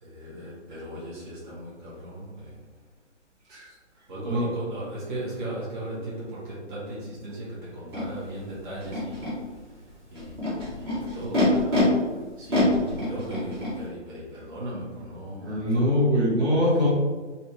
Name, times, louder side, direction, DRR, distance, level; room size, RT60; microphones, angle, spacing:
voice 1, 0.0-2.6 4.1-9.4 10.1-10.9 11.1-11.8 12.4-15.6 16.5-16.9, right 1 dB, 45° right, -7 dB, 1.3 m, -37 dB
Animal, 7.9-8.0 8.8-9.3 10.1-11.8 12.5-13.7, left 2 dB, 20° right, 0.8 m, -26 dB
voice 2, 15.4-16.9, left 1 dB, 65° right, -6 dB, 1.3 m, -23 dB
3.2 x 2.8 x 3.0 m, 1.4 s
hypercardioid pair, 150°, 36 cm